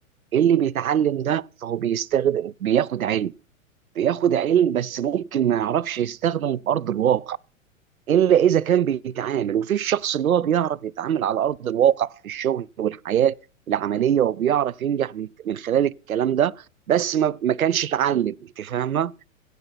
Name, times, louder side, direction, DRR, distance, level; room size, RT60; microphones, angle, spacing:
voice 1, 0.3-3.3 4.0-7.4 8.1-13.3 13.7-16.5 16.9-19.1, right 10 dB, 85° right, 0.5 m, -22 dB
16.0 x 5.5 x 5.9 m
figure-of-eight pair, 105°, 41 cm